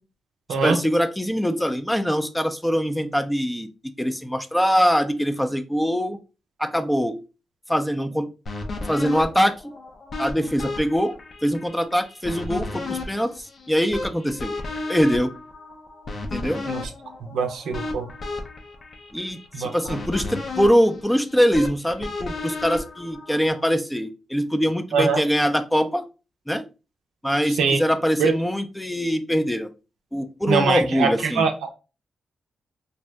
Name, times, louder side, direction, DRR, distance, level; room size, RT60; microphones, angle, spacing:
voice 1, 0.6-3.7 4.0-6.2 6.6-7.2 7.7-8.3 8.9-9.7 10.2-11.2 11.4-14.6 14.9-15.3 16.3-16.6 19.1-26.1 26.5-26.7 27.2-29.7 30.1-31.5, equal, 5° left, 8 dB, 0.4 m, -23 dB
sound 1, 8.5-23.7, left 3 dB, 60° left, 0.6 m, -34 dB
voice 2, 17.3-18.1 19.5-19.7 24.9-25.2 27.6-27.8 28.2-28.3 30.5-31.5, right 5 dB, 80° right, 5 dB, 0.5 m, -22 dB
2.7 x 2.0 x 3.3 m, 0.31 s
supercardioid pair, 50°, 0 cm